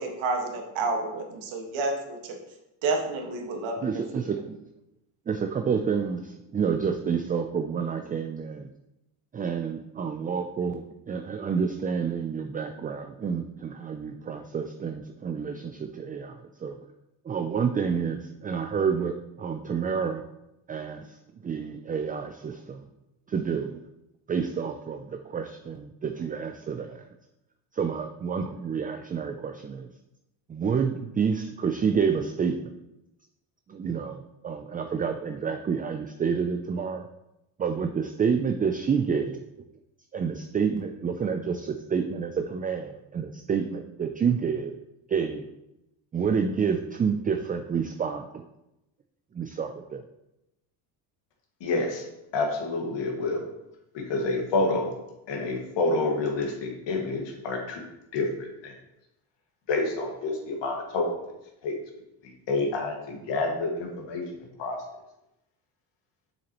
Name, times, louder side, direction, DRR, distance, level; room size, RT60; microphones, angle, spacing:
voice 1, 0.0-2.4 2.8-4.3, right 3 dB, 70° right, 2 dB, 1.7 m, -30 dB
voice 2, 3.8-4.6 5.3-8.7 9.3-16.4 16.6-16.8 17.3-20.2 20.7-21.2 21.4-22.9 23.3-23.8 24.3-27.1 27.7-29.9 30.5-32.7 33.7-37.0 37.6-39.7 40.1-44.7 45.1-45.5 46.1-48.4 49.3-50.0, right 6 dB, 20° right, 6 dB, 0.3 m, -29 dB
voice 3, 51.6-52.0 52.3-53.5 53.9-54.9 55.3-57.8 58.1-58.7 59.7-61.1 61.6-61.7 62.5-64.2 64.6-64.8, left 3 dB, 60° left, 1 dB, 1.9 m, -28 dB
7.1 x 6.3 x 3.0 m, 0.89 s
supercardioid pair, 90°, 48 cm